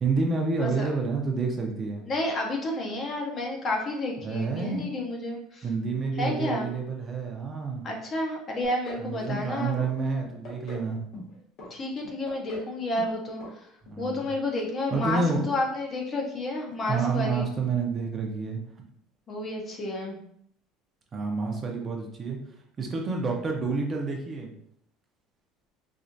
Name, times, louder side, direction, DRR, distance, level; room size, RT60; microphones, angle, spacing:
voice 1, 0.0-2.1 4.2-4.8 5.6-7.8 9.0-11.0 13.9-14.2 14.9-15.4 16.8-18.6 21.1-22.4 22.8-24.5, right 4 dB, 25° right, 1 dB, 0.5 m, -29 dB
voice 2, 0.6-0.9 2.1-5.7 6.2-6.7 7.8-9.7 11.7-13.6 14.0-17.5 19.3-20.2, left 1 dB, 30° left, 1 dB, 0.7 m, -30 dB
sound 1, 8.6-9.1 9.3-9.9 10.2-10.9 11.1-11.7 12.0-12.7 12.9-13.2 13.4-13.5 13.9-14.0, left 1 dB, 55° left, 1.1 m, -41 dB
4.2 x 2.4 x 2.6 m, 0.69 s
cardioid pair, 150°, 0 cm